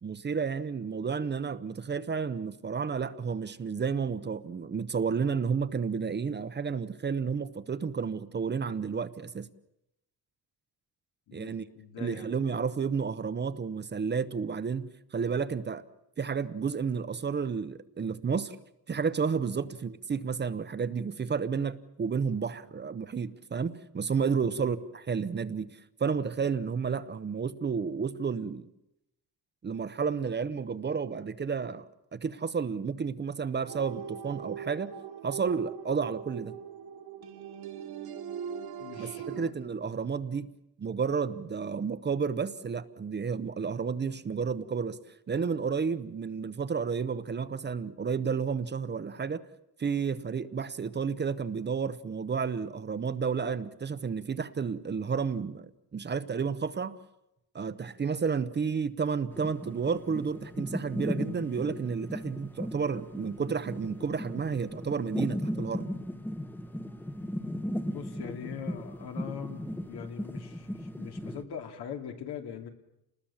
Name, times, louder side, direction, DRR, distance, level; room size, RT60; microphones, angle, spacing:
voice 1, 0.0-9.5 11.3-11.6 12.0-15.8 16.2-18.6 18.9-28.7 29.6-31.8 32.1-34.9 35.2-36.6 39.0-40.5 40.8-45.0 45.3-49.4 49.8-57.0 57.5-65.9, right 6 dB, 25° right, 0.8 m, -31 dB
voice 2, 11.3-12.3 24.5-24.7 38.8-39.5 39.8-39.9 67.9-72.7, left 7 dB, 80° left, 2.8 m, -42 dB
sound 1, 33.7-39.5, right 8 dB, 70° right, 2.0 m, -41 dB
sound 2, 59.3-71.4, equal, 5° left, 1.0 m, -37 dB
29.0 x 20.0 x 7.3 m
cardioid pair, 160°, 38 cm